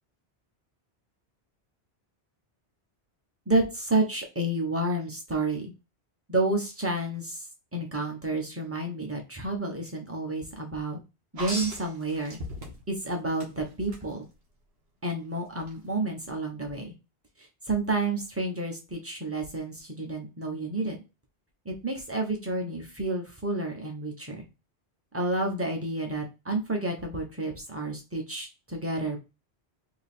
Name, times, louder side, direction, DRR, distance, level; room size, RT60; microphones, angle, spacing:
voice 1, 3.5-5.7 6.3-7.4 7.7-11.0 11.3-12.4 12.9-14.2 15.0-16.9 17.7-21.0 21.6-24.4 25.1-29.2, right 2 dB, 15° right, 2 dB, 0.9 m, -30 dB
sound 1, 11.4-13.0 13.4-14.0 15.6-15.7, equal, 75° right, 1.5 m, -36 dB
3.1 x 3.0 x 4.3 m, 0.28 s
omnidirectional pair, 1.1 m